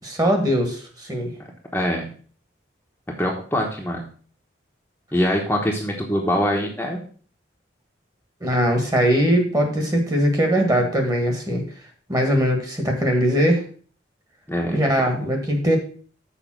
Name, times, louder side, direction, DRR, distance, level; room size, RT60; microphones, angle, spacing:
voice 1, 0.0-1.3 8.4-11.6 12.1-13.6 14.7-15.8, equal, 20° right, 3 dB, 1.6 m, -20 dB
voice 2, 1.7-2.1 3.2-4.0 5.1-7.0 14.5-14.8, equal, 10° left, -1 dB, 1.0 m, -23 dB
7.1 x 4.9 x 6.1 m, 0.43 s
head